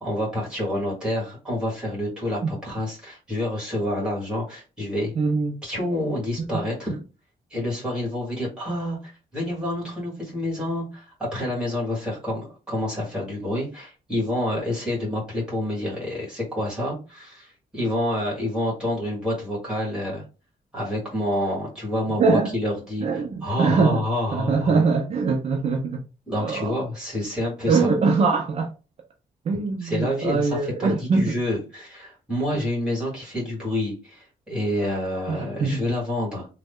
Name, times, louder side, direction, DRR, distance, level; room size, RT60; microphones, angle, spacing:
voice 1, 0.0-5.1 5.6-7.0 7.5-20.2 20.7-24.8 26.3-27.9 29.8-36.5, left 1 dB, 5° right, 1.7 m, -28 dB
voice 2, 5.2-5.6 22.2-22.5 23.0-24.0 24.3-26.0 26.4-26.8 27.7-28.7 29.5-31.3 35.3-35.8, right 4 dB, 45° right, 0.4 m, -22 dB
3.1 x 2.1 x 3.5 m
wide cardioid pair, 170°, 15 cm